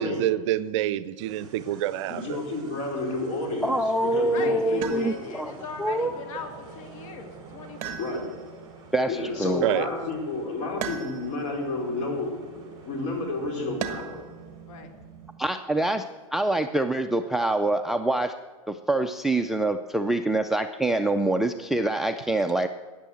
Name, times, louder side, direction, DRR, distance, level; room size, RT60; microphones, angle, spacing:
voice 1, 0.0-2.4 9.6-9.9, right 13 dB, 55° right, 16 dB, 0.6 m, -27 dB
sound 1, 1.2-15.4, right 4 dB, 20° right, 5.1 m, -47 dB
voice 2, 2.2-3.7 4.0-5.1 8.0-8.2 9.1-14.2, left 2 dB, 40° left, 0 dB, 4.7 m, -31 dB
voice 3, 3.6-6.1 8.9-9.7 15.4-16.1 16.3-18.4 18.7-22.7, right 2 dB, ahead, 8 dB, 0.4 m, -25 dB
voice 4, 4.3-8.4 14.7-14.9, left 5 dB, 60° left, 5 dB, 2.2 m, -40 dB
sound 2, 4.8-5.5 7.8-8.6 10.8-11.5 13.8-14.3 16.0-16.6, right 8 dB, 40° right, 1.3 m, -37 dB
13.5 x 9.3 x 7.7 m, 1.4 s
hypercardioid pair, 135°, 18 cm